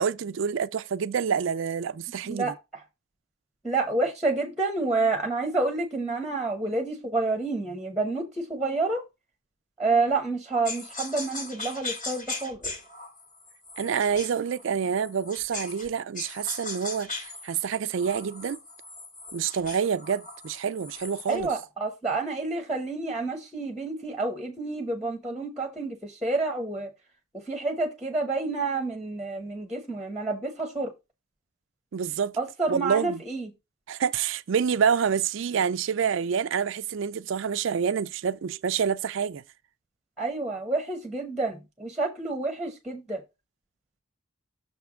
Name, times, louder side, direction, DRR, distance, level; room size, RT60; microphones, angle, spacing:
voice 1, 0.0-2.5 13.8-18.6 19.3-21.5 31.9-32.4 32.7-33.2 33.9-39.4, right 7 dB, 60° right, 0.4 m, -27 dB
voice 2, 2.2-2.8 3.6-9.0 9.8-12.6 21.2-26.9 27.5-30.9 32.4-33.5 40.2-43.2, right 3 dB, 5° right, 1.1 m, -29 dB
sound 1, 10.6-15.9 16.1-21.5, left 3 dB, 40° left, 2.2 m, -39 dB
6.6 x 3.5 x 6.1 m
head